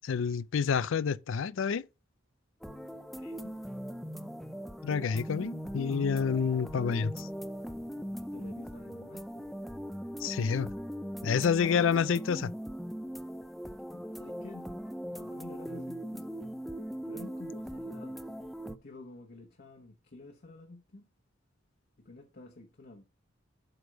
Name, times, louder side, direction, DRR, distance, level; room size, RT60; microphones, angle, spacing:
voice 1, 0.1-1.8 4.8-7.3 10.2-10.7 11.2-12.5, left 6 dB, 70° left, 0.4 m, -28 dB
sound 1, 2.6-18.8, equal, ahead, 0.4 m, -40 dB
voice 2, 3.1-3.6 8.0-9.6 13.5-13.6 13.9-16.3 17.0-18.2 18.8-21.0 22.0-23.0, left 2 dB, 50° left, 1.0 m, -50 dB
7.9 x 3.5 x 5.1 m
head